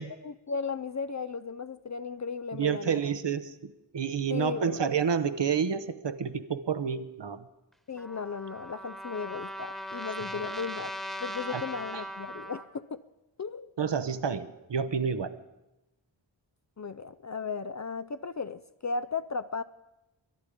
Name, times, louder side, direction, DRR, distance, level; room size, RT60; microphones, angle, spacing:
voice 1, 0.0-3.0 4.3-4.8 7.9-10.9 11.2-13.0 13.4-13.7 16.8-19.6, left 5 dB, 40° left, 13 dB, 0.4 m, -36 dB
voice 2, 2.5-7.4 10.3-10.5 11.5-11.6 11.9-12.0 13.8-15.4, right 7 dB, 65° right, 11 dB, 0.9 m, -29 dB
Trumpet, 8.0-12.7, equal, ahead, 1.3 m, -39 dB
22.0 x 11.0 x 5.0 m, 0.95 s
wide cardioid pair, 60°, 46 cm